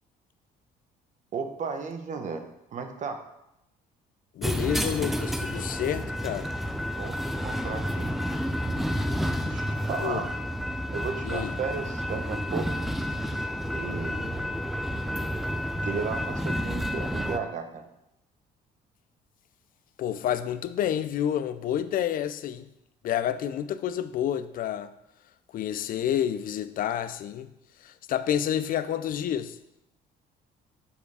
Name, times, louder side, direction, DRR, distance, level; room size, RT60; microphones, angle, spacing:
voice 1, 1.3-3.2 7.0-8.1 9.4-10.3 10.9-12.8 13.7-14.4 15.8-17.9, right 5 dB, 45° right, 1.0 m, -34 dB
voice 2, 4.3-6.5 10.0-10.2 11.2-11.5 20.0-22.7 23.0-24.9 25.5-27.5 27.8-29.6, left 10 dB, 55° left, 0.5 m, -29 dB
sound 1, 4.4-17.4, equal, ahead, 0.5 m, -30 dB
6.9 x 5.1 x 4.8 m
cardioid pair, 110°, 17 cm